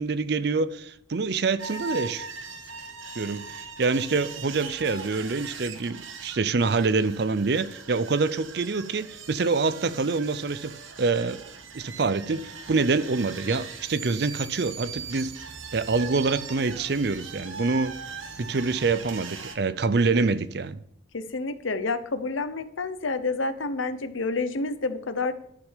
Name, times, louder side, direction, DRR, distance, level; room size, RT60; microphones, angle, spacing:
voice 1, 0.0-2.3 3.2-11.4 11.7-15.4 15.7-18.0 18.4-20.8, right 4 dB, 55° right, 0.5 m, -26 dB
sound 1, 1.6-19.6, right 5 dB, 90° right, 1.2 m, -40 dB
voice 2, 21.1-25.3, left 3 dB, 85° left, 0.9 m, -29 dB
11.5 x 6.1 x 6.7 m
head